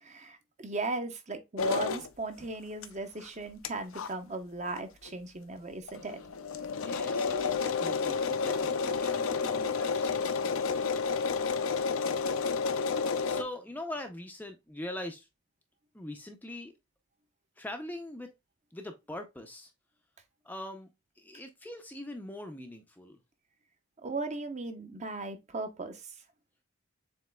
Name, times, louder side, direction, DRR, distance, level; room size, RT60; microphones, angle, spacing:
voice 1, 0.0-6.2 24.0-26.1, right 3 dB, 35° right, 0.7 m, -37 dB
sound 1, 1.6-2.1 2.8-2.9 3.3-3.4 3.6-3.7 3.9-4.1 4.8-4.9 5.1-5.2 5.5-5.6 5.9-13.4, left 5 dB, 75° left, 0.5 m, -30 dB
voice 2, 6.6-10.9 13.2-15.3 15.9-16.7 17.6-18.3 18.7-19.7 20.4-20.9 21.2-23.2, left 1 dB, 10° left, 0.5 m, -42 dB
7.3 x 3.0 x 2.2 m
head